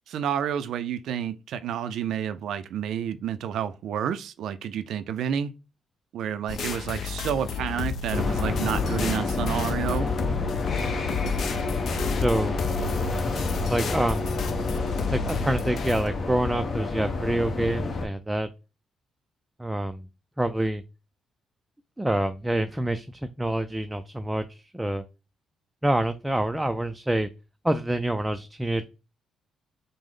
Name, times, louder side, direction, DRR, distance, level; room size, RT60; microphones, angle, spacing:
voice 1, 0.1-5.5 6.1-10.1, right 9 dB, 75° right, 0.4 m, -30 dB
sound 1, 6.5-16.1, left 6 dB, 60° left, 0.6 m, -32 dB
sound 2, 8.1-18.1, left 3 dB, 45° left, 1.0 m, -29 dB
voice 2, 11.7-12.6 13.7-14.3 15.1-18.5 19.6-20.0 20.4-20.8 22.0-25.0 25.8-27.3 27.6-28.8, right 1 dB, 10° right, 0.3 m, -27 dB
4.9 x 2.0 x 3.7 m
cardioid pair, 90°, 0 cm